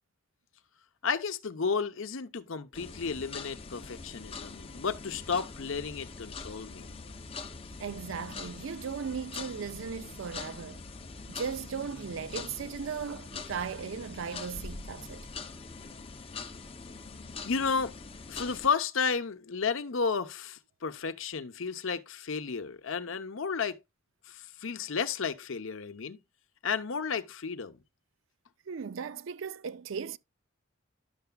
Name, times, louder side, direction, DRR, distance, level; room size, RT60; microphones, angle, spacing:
voice 1, 1.0-6.9 17.4-17.9 18.3-23.8 24.3-26.2 26.6-27.8, left 5 dB, 70° left, 0.7 m, -32 dB
sound 1, 2.7-18.7, left 4 dB, 25° left, 0.6 m, -43 dB
voice 2, 7.8-10.8 11.3-15.3 28.7-30.2, right 6 dB, 70° right, 0.4 m, -37 dB
11.0 x 6.8 x 2.2 m
head